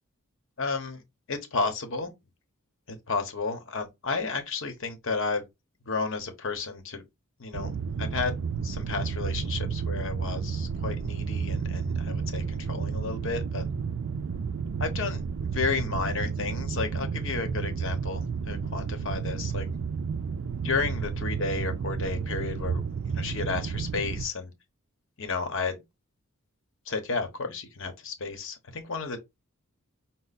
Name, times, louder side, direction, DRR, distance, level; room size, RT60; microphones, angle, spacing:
voice 1, 0.6-1.0 1.3-2.1 2.9-5.4 5.9-7.0 7.4-7.7 8.0-13.6 14.8-15.2 15.5-19.7 20.6-22.8 23.1-24.5 25.2-25.8 26.9-29.2, left 4 dB, 60° left, 1.0 m, -32 dB
sound 1, 7.5-24.2, right 5 dB, 60° right, 0.4 m, -31 dB
5.4 x 2.0 x 4.0 m
head